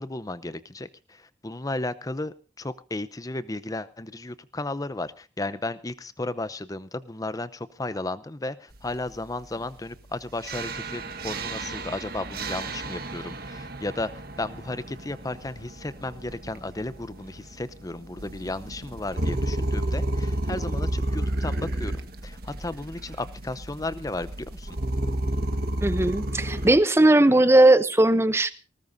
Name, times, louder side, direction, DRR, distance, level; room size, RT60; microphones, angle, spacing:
voice 1, 0.0-14.1 14.4-21.9 22.2-24.7, left 2 dB, 20° left, 15 dB, 0.7 m, -34 dB
sound 1, 10.4-26.7, right 1 dB, 55° right, 1.5 m, -31 dB
voice 2, 25.8-28.5, right 1 dB, 15° right, 13 dB, 0.7 m, -18 dB
20.0 x 19.0 x 2.7 m, 0.33 s
head